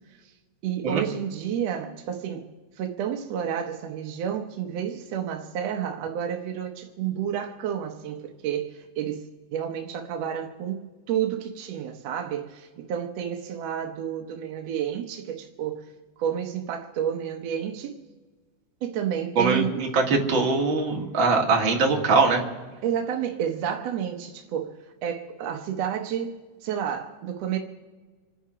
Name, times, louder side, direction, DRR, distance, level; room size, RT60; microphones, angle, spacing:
voice 1, 0.6-2.4 2.8-15.8 16.2-18.0 18.8-19.8 22.8-24.7 25.0-26.3 26.6-27.6, right 9 dB, 65° right, 3 dB, 1.7 m, -30 dB
voice 2, 19.4-22.4, right 4 dB, 40° right, 1 dB, 2.3 m, -22 dB
27.0 x 10.5 x 5.0 m, 1.4 s
omnidirectional pair, 3.8 m